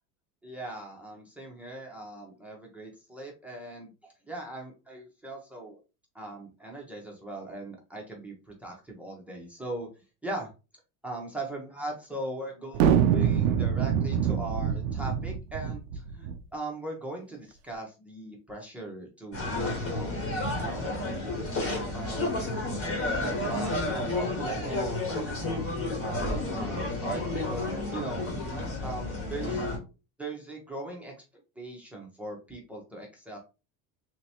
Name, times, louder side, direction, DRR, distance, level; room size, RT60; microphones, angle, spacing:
voice 1, 0.4-5.8 6.1-9.9 10.2-10.5 11.0-20.2 20.5-20.9 21.9-22.4 23.3-25.8 26.6-28.3 28.8-29.7 30.2-31.1 31.6-33.4, right 2 dB, 5° right, -1 dB, 0.9 m, -40 dB
sound 1, 12.7-16.4, right 8 dB, 85° right, 0.6 m, -25 dB
sound 2, 19.3-29.8, left 2 dB, 35° left, 1.4 m, -31 dB
3.3 x 2.9 x 2.8 m, 0.30 s
supercardioid pair, 130°, 41 cm